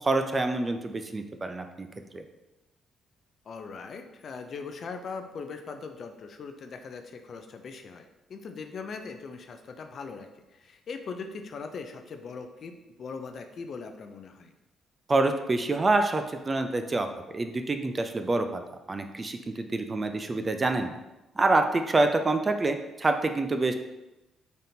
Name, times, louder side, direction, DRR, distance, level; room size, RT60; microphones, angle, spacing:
voice 1, 0.0-1.9 2.1-2.2 15.1-17.1 17.3-18.6 18.9-21.0 21.4-23.7, right 2 dB, 30° right, 7 dB, 0.4 m, -26 dB
voice 2, 3.4-14.5, left 4 dB, 55° left, 6 dB, 0.4 m, -40 dB
4.1 x 3.5 x 2.7 m, 0.99 s
cardioid pair, 90°, 0 cm